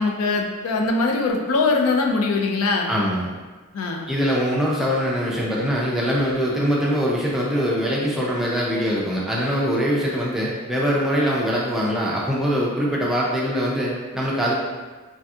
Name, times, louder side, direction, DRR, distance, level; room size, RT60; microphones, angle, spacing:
voice 1, 0.0-2.9 3.7-4.1, left 3 dB, 70° left, 2 dB, 0.4 m, -22 dB
voice 2, 2.9-3.3 4.1-14.5, equal, ahead, -5 dB, 0.4 m, -23 dB
3.3 x 2.6 x 2.3 m, 1.3 s
head